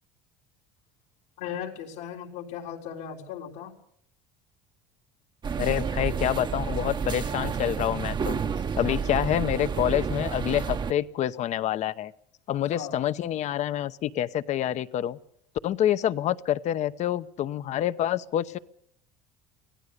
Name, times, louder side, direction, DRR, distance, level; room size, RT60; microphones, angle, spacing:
voice 1, 1.4-3.8 12.7-13.0, left 9 dB, 85° left, 0 dB, 3.8 m, -37 dB
sound 1, 5.4-10.9, right 6 dB, 30° right, 0.9 m, -30 dB
voice 2, 5.6-8.4 8.8-12.1 12.5-15.2 15.6-18.6, left 11 dB, 50° left, 15 dB, 0.9 m, -27 dB
24.5 x 16.5 x 6.7 m, 0.68 s
supercardioid pair, 105°, 15 cm